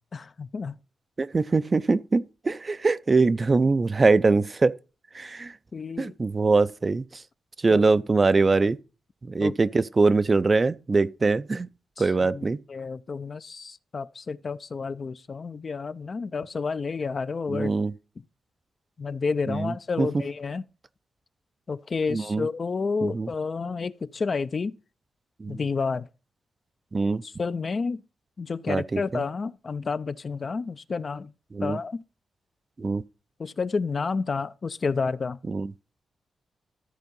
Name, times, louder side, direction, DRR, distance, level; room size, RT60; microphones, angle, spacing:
voice 1, 0.1-0.8 5.7-6.1 7.7-7.8 9.4-9.5 12.0-17.7 19.0-20.6 21.7-24.7 25.5-26.1 27.2-28.0 28.4-31.3 31.6-32.0 33.4-35.4, left 4 dB, 40° left, 0.4 m, -30 dB
voice 2, 1.2-4.7 5.1-5.5 6.0-7.2 7.6-8.8 9.3-11.7 12.0-12.6 17.5-17.9 19.5-20.1 22.1-22.5 23.0-23.3 25.4-25.6 26.9-27.2 28.7-29.2 31.5-31.8 32.8-33.0 35.5-35.7, right 3 dB, 30° right, 0.4 m, -23 dB
13.5 x 4.5 x 5.3 m
wide cardioid pair, 135°, 0 cm